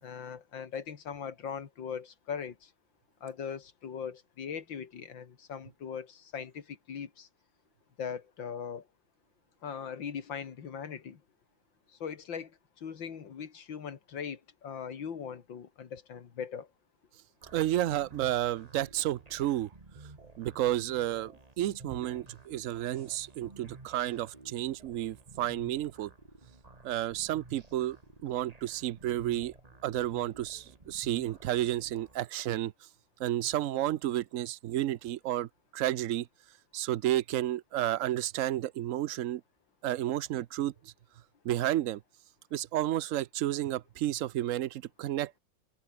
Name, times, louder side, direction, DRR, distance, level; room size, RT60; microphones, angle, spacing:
voice 1, 0.0-2.7 3.2-7.3 8.0-8.8 9.6-11.2 12.0-12.5 12.8-16.7, left 7 dB, 80° left, 2.6 m, -40 dB
sound 1, 17.4-32.2, right 2 dB, 20° right, 2.0 m, -53 dB
voice 2, 17.5-19.7 20.4-26.1 26.8-28.0 28.2-29.5 29.8-32.7 33.2-36.3 36.7-39.4 39.8-40.9 41.4-42.0 42.5-45.4, right 13 dB, 75° right, 0.7 m, -31 dB
omnidirectional pair, 2.0 m